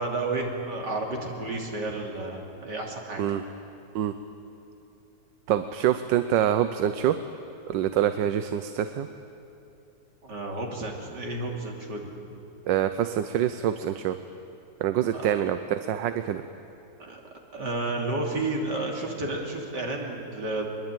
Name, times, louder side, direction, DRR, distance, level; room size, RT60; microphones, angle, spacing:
voice 1, 0.0-3.2 10.2-12.1 15.1-15.3 17.0-17.2 17.5-20.7, right 2 dB, 70° right, 0 dB, 3.5 m, -31 dB
voice 2, 5.5-7.2 7.7-9.1 12.7-14.2 14.8-16.4, right 10 dB, 85° right, 10 dB, 1.4 m, -25 dB
22.5 x 22.0 x 9.1 m, 2.8 s
omnidirectional pair, 1.9 m